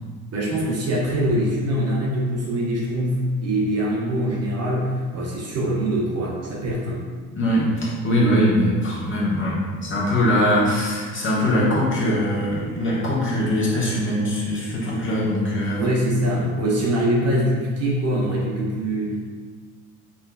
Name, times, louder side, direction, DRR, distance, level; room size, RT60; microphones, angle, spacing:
voice 1, 0.3-7.0 15.8-19.2, right 1 dB, 35° right, -4 dB, 1.0 m, -23 dB
voice 2, 7.3-15.8, equal, 25° left, -6 dB, 1.4 m, -22 dB
5.7 x 3.5 x 2.3 m, 1.5 s
figure-of-eight pair, 60°, 44 cm